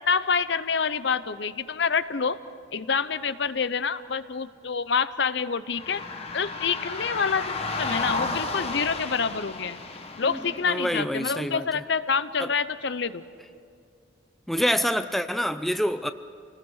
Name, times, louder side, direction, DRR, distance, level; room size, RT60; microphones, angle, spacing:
voice 1, 0.0-2.4 2.7-6.0 6.3-9.8 10.2-13.2, left 5 dB, 60° left, 13 dB, 0.7 m, -27 dB
sound 1, 5.7-10.9, left 3 dB, 30° left, 1.5 m, -32 dB
voice 2, 10.6-11.8 12.4-12.5 14.5-16.1, equal, ahead, 9 dB, 0.5 m, -27 dB
28.0 x 20.0 x 6.4 m, 2.4 s
head